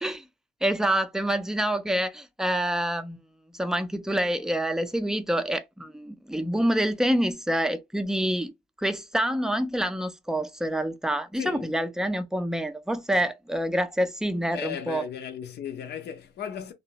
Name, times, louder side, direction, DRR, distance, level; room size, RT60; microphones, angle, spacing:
voice 1, 0.6-3.2 3.5-8.5 8.8-15.0, right 1 dB, 5° right, 0.4 m, -27 dB
voice 2, 11.4-11.7 13.1-13.2 14.5-16.7, left 8 dB, 55° left, 0.6 m, -36 dB
2.7 x 2.0 x 2.8 m
cardioid pair, 90°, 20 cm